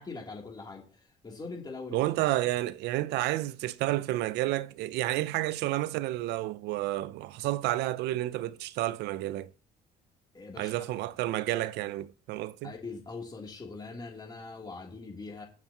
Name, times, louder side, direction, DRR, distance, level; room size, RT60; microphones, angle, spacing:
voice 1, 0.0-2.0 10.3-10.9 11.2-11.3 12.6-15.5, left 3 dB, 25° left, 3.2 m, -42 dB
voice 2, 1.9-9.5 10.6-12.7, right 16 dB, 85° right, 0.6 m, -30 dB
20.0 x 7.4 x 3.0 m
cardioid pair, 110°, 17 cm